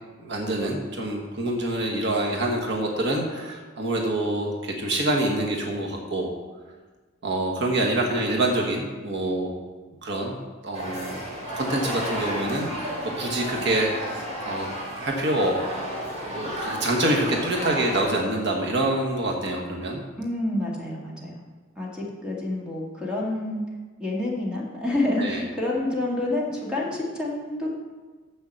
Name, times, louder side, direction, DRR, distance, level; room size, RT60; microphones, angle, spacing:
voice 1, 0.2-6.3 7.2-9.5 10.0-10.4 10.6-11.2 11.6-15.6 16.3-20.0 25.2-25.4, right 1 dB, 55° right, 0 dB, 1.3 m, -26 dB
sound 1, 10.7-18.0, equal, 35° right, 2.9 m, -32 dB
voice 2, 20.2-21.3 21.8-23.6 24.0-27.7, left 2 dB, 5° right, -4 dB, 2.0 m, -28 dB
7.1 x 6.6 x 7.4 m, 1.3 s
head